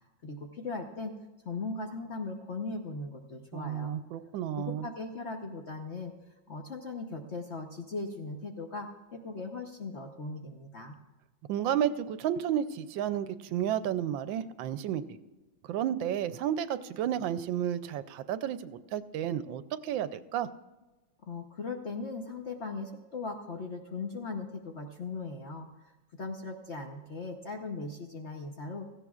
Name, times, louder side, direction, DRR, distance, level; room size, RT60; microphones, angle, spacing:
voice 1, 0.2-1.1 1.4-3.9 4.6-6.1 6.5-11.0 21.2-25.7 26.2-28.9, left 3 dB, 50° left, 2 dB, 0.9 m, -38 dB
voice 2, 3.5-4.9 11.5-15.0 15.6-20.5, right 10 dB, 80° right, 12 dB, 1.3 m, -32 dB
17.0 x 14.5 x 2.4 m, 1.1 s
omnidirectional pair, 2.1 m